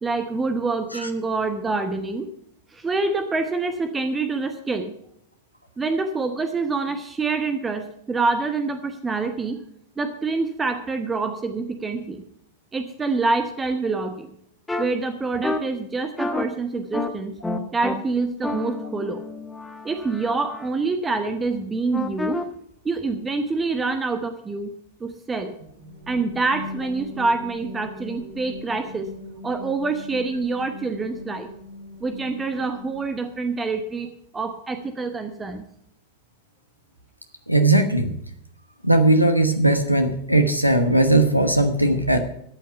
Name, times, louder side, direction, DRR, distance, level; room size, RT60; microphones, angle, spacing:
voice 1, 0.0-2.3 2.7-4.9 5.8-9.6 10.0-12.2 12.7-14.3 14.8-17.4 17.7-19.2 19.8-22.4 22.8-24.7 25.0-25.5 26.1-29.1 29.4-31.5 32.0-35.6, right 3 dB, 15° right, 8 dB, 1.0 m, -26 dB
sound 1, 14.7-14.8 15.4-15.6 16.2-16.4 16.9-17.1 17.4-17.9 18.4-20.7 21.9-22.4, left 2 dB, 10° left, 1.4 m, -29 dB
sound 2, 25.6-33.4, left 2 dB, 70° right, 2.0 m, -40 dB
voice 2, 37.5-38.1 38.8-42.2, right 2 dB, 90° left, 6 dB, 1.1 m, -18 dB
13.5 x 8.5 x 5.5 m, 0.72 s
figure-of-eight pair, 90°, 0 cm